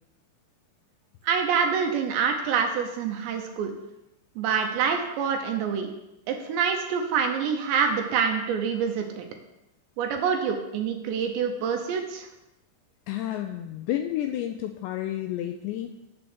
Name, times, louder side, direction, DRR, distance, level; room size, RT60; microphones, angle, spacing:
voice 1, 1.2-3.7 4.4-5.9 6.3-9.2 10.0-12.3, right 6 dB, 75° right, 4 dB, 3.0 m, -26 dB
voice 2, 13.1-16.0, left 12 dB, 85° left, 6 dB, 2.5 m, -31 dB
8.5 x 8.2 x 6.2 m, 0.91 s
omnidirectional pair, 5.6 m